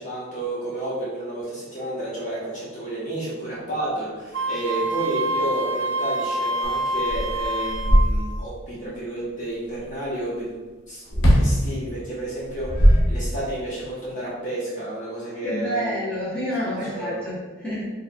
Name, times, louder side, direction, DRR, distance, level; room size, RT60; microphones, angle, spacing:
voice 1, 0.0-10.5 10.9-16.0 16.6-17.2, right 1 dB, 35° left, -8 dB, 1.1 m, -31 dB
Wind instrument woodwind instrument, 4.3-8.1, right 1 dB, 60° right, 0.5 m, -26 dB
sound 1, 6.6-6.7 7.1-8.6 11.1-11.6 12.4-13.6, equal, 60° left, 0.9 m, -18 dB
voice 2, 15.4-17.9, equal, 5° left, -10 dB, 1.2 m, -28 dB
4.3 x 3.4 x 2.3 m, 1.3 s
head